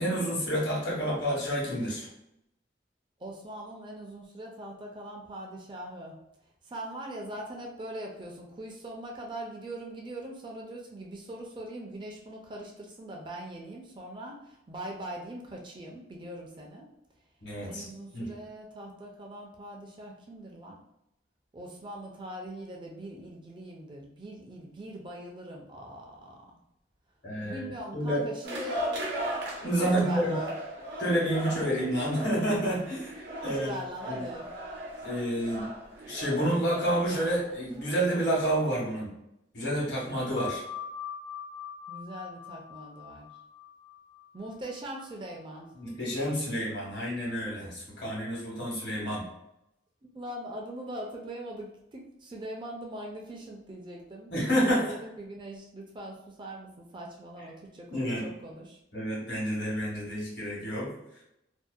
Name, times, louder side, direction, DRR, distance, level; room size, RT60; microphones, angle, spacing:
voice 1, 0.0-2.1 17.4-17.9 18.1-18.3 27.2-28.3 29.6-30.3 31.0-33.1 33.4-33.7 34.1-34.2 35.0-35.7 36.1-39.1 39.5-40.6 45.7-49.2 54.3-54.9 57.9-58.3 58.9-60.9, equal, 75° left, -5 dB, 1.1 m, -29 dB
voice 2, 3.2-6.2 6.7-16.9 17.6-20.8 21.5-26.4 27.4-28.9 29.6-30.5 33.3-34.5 41.9-43.3 44.3-45.7 50.0-54.3 54.7-58.8, right 1 dB, 25° right, -1 dB, 0.4 m, -41 dB
sound 1, 28.4-38.6, right 1 dB, 70° right, 0.7 m, -38 dB
sound 2, 40.4-45.5, left 7 dB, 45° left, 0.6 m, -42 dB
2.6 x 2.1 x 2.3 m, 0.83 s
head